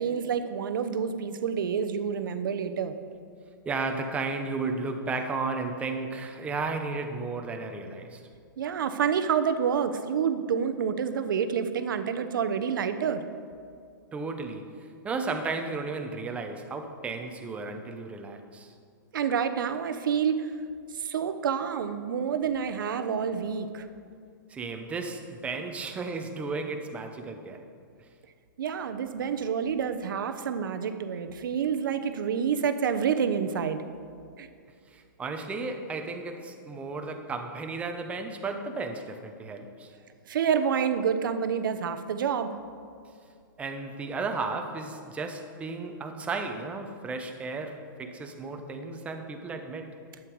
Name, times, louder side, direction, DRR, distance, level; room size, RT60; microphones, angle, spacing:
voice 1, 0.0-2.9 8.6-13.2 19.1-20.5 20.9-23.9 28.6-33.8 34.4-34.5 40.3-42.5, right 7 dB, 70° right, 10 dB, 0.9 m, -28 dB
voice 2, 3.6-8.2 14.1-18.7 24.5-27.7 34.9-39.9 43.6-50.0, right 3 dB, 10° right, 5 dB, 0.8 m, -34 dB
11.5 x 8.9 x 4.7 m, 2.2 s
hypercardioid pair, 150°, 11 cm